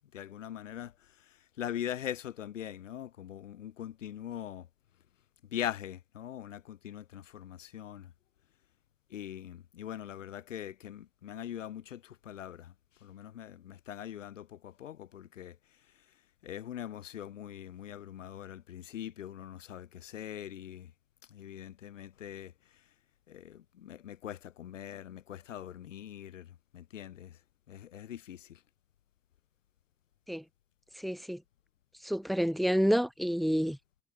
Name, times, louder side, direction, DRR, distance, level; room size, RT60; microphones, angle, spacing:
voice 1, 0.0-4.7 5.5-8.1 9.1-12.7 13.0-15.6 16.4-20.9 21.3-22.5 23.3-27.4 27.7-28.6, left 11 dB, 80° left, 4.2 m, -42 dB
voice 2, 31.0-31.4 32.0-33.8, equal, ahead, 0.5 m, -28 dB
figure-of-eight pair, 45°, 37 cm